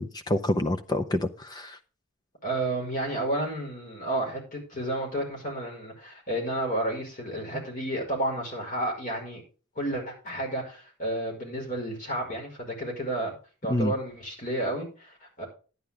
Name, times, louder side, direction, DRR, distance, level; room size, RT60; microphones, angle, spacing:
voice 1, 0.0-1.8 7.5-7.6 13.7-13.9, left 1 dB, 20° left, 7 dB, 0.6 m, -27 dB
voice 2, 2.4-9.4 9.8-13.4 13.6-15.5, right 1 dB, 35° left, 0 dB, 5.3 m, -31 dB
11.5 x 9.8 x 3.6 m, 0.35 s
head